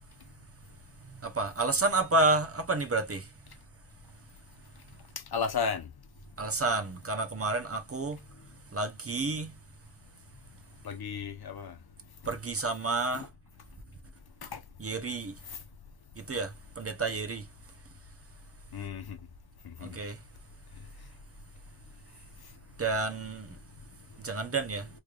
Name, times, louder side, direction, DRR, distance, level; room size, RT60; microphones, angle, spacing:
voice 1, 1.1-3.3 6.4-8.2 8.7-9.5 12.3-13.3 14.8-15.3 16.2-17.5 19.8-20.2 22.8-23.6 24.2-24.9, right 3 dB, 35° right, 0.7 m, -30 dB
voice 2, 5.3-5.9 10.8-11.8 14.4-14.6 15.5-15.6 18.7-19.2 19.6-19.9, left 5 dB, 60° left, 0.9 m, -33 dB
3.3 x 3.2 x 2.4 m
wide cardioid pair, 80°, 43 cm